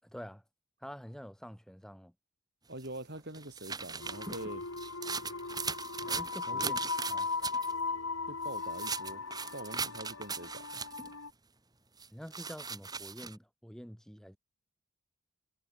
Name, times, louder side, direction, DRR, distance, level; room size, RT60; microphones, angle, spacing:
voice 1, 0.0-0.4 0.8-2.1 6.0-6.8 7.1-7.3 12.1-14.4, equal, ahead, 7.3 m, -47 dB
voice 2, 2.7-4.7 6.5-6.7 8.3-9.2 9.5-10.8, right 1 dB, 50° right, 5.7 m, -44 dB
sound 1, 2.8-7.7 8.4-11.1 12.0-13.3, right 5 dB, 20° right, 5.9 m, -39 dB
sound 2, 4.0-11.3, left 4 dB, 75° left, 3.8 m, -38 dB
head